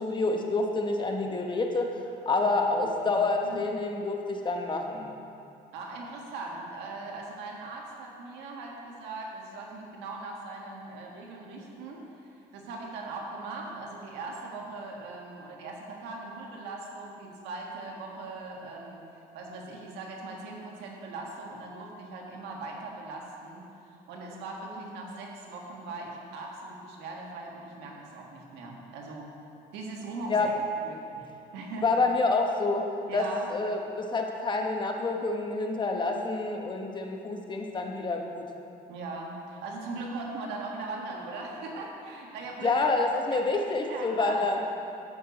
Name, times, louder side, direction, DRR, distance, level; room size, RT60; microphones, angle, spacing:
voice 1, 0.0-5.1 30.3-30.5 31.8-32.9 33.1-33.2 33.5-38.5 42.6-44.6, left 3 dB, 25° left, 2 dB, 1.1 m, -28 dB
voice 2, 2.4-3.7 5.7-19.0 19.3-29.3 29.7-30.5 30.8-31.9 33.1-33.5 38.9-42.9 43.3-44.5, right 3 dB, 90° right, -1 dB, 1.8 m, -40 dB
11.5 x 8.5 x 4.1 m, 2.6 s
cardioid pair, 110°, 17 cm